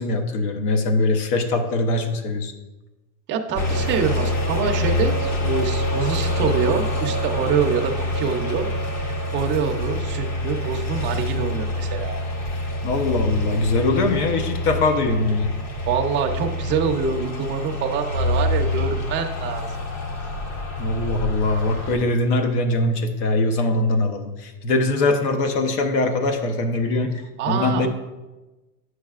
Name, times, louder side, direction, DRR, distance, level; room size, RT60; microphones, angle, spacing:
voice 1, 0.0-2.5 12.8-15.5 20.8-27.1 27.5-27.9, left 2 dB, 70° left, 5 dB, 1.0 m, -22 dB
voice 2, 3.3-8.7 9.0-12.2 15.9-19.7 27.4-27.9, right 6 dB, 25° right, 3 dB, 0.5 m, -25 dB
sound 1, 3.5-22.0, left 1 dB, 45° left, 1.1 m, -26 dB
9.2 x 6.4 x 2.4 m, 1.1 s
supercardioid pair, 145°, 48 cm